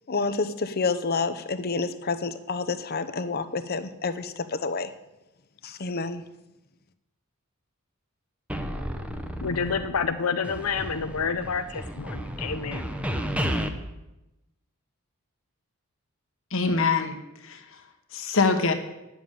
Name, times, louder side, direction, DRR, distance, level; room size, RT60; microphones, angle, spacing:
voice 1, 0.1-4.9 5.6-6.2, left 4 dB, 45° left, 11 dB, 0.8 m, -29 dB
sound 1, 8.5-10.2 10.4-13.7, equal, 5° right, 0.8 m, -32 dB
voice 2, 9.4-12.8, left 5 dB, 80° left, 8 dB, 0.7 m, -28 dB
voice 3, 16.5-17.6 18.1-18.7, left 4 dB, 60° left, 6 dB, 1.4 m, -24 dB
10.5 x 7.2 x 9.1 m, 0.96 s
head